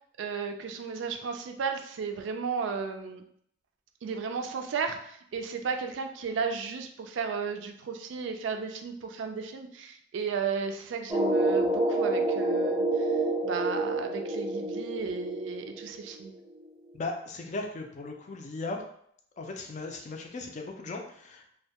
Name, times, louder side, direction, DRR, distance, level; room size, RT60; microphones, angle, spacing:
voice 1, 0.2-3.2 4.0-16.3, right 5 dB, 80° right, 5 dB, 0.3 m, -34 dB
sound 1, 11.1-16.6, right 2 dB, 5° right, 0.7 m, -28 dB
voice 2, 16.9-18.8 19.4-21.5, left 3 dB, 40° left, 3 dB, 0.4 m, -37 dB
2.2 x 2.1 x 2.8 m, 0.67 s
head